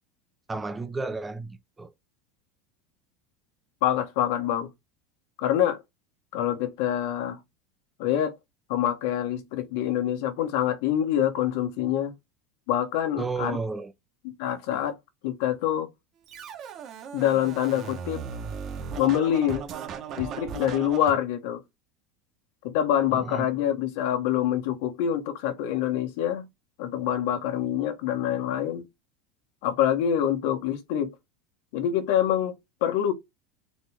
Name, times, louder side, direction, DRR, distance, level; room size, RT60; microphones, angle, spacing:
voice 1, 0.5-1.9 13.2-13.9 23.1-23.5, right 4 dB, 10° right, 0.4 m, -32 dB
voice 2, 3.8-4.7 5.4-5.8 6.3-7.4 8.0-8.3 8.7-12.1 12.7-13.6 14.2-15.0 15.2-15.9 17.1-18.2 19.0-19.6 20.2-21.6 22.6-26.4 26.8-28.8 29.6-31.1 31.7-33.1, left 10 dB, 65° left, 1.2 m, -26 dB
Scratching (performance technique), 16.3-21.1, right 6 dB, 35° right, 0.9 m, -37 dB
4.1 x 3.0 x 3.4 m
supercardioid pair, 170°, 0 cm